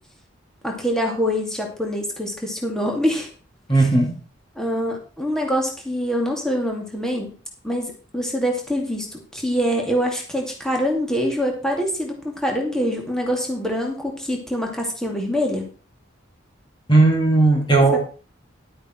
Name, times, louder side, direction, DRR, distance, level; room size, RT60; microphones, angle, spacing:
voice 1, 0.6-3.3 4.6-7.3 7.6-15.7 17.9-18.0, equal, 5° left, 0 dB, 2.4 m, -24 dB
voice 2, 3.7-4.2 16.9-18.0, right 2 dB, 20° left, 1 dB, 2.1 m, -16 dB
11.5 x 8.9 x 4.4 m, 0.36 s
head